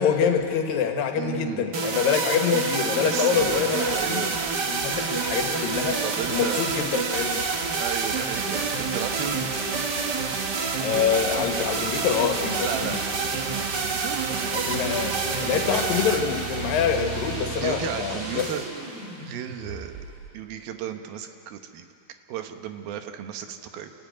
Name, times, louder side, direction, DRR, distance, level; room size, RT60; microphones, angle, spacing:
voice 1, 0.0-4.3 4.6-6.0 6.3-7.5 10.8-13.0 14.5-18.5, left 7 dB, 75° left, 4 dB, 3.1 m, -25 dB
voice 2, 1.1-1.7 3.0-4.4 6.0-6.7 7.8-9.5 12.6-14.8 17.6-18.7 19.2-20.1 20.3-21.9 22.3-23.9, right 9 dB, 85° right, 7 dB, 3.0 m, -34 dB
sound 1, 1.7-17.8, right 4 dB, 70° right, 1.0 m, -28 dB
sound 2, 3.4-20.3, right 4 dB, 35° right, 3.2 m, -39 dB
28.5 x 14.5 x 9.4 m, 2.6 s
omnidirectional pair, 4.1 m